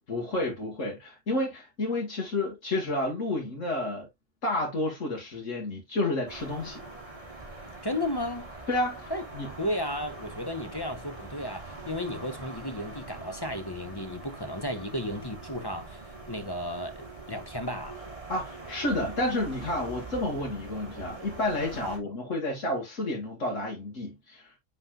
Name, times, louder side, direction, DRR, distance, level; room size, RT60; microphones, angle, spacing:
voice 1, 0.1-4.1 4.4-6.8 8.7-9.5 18.3-24.6, left 1 dB, 85° left, 2.2 m, -30 dB
sound 1, 6.3-22.0, right 3 dB, 25° right, 2.2 m, -43 dB
voice 2, 7.8-8.5 9.1-9.2 9.6-16.0 16.3-18.0 21.8-22.1, left 1 dB, 20° left, 0.8 m, -34 dB
9.5 x 4.2 x 2.4 m
omnidirectional pair, 1.3 m